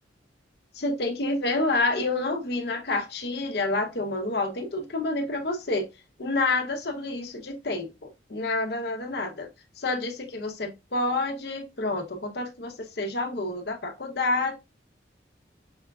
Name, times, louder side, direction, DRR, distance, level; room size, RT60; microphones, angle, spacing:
voice 1, 0.8-5.9 6.2-9.5 9.8-14.5, left 2 dB, 55° left, 0.8 m, -28 dB
5.6 x 3.4 x 2.4 m
head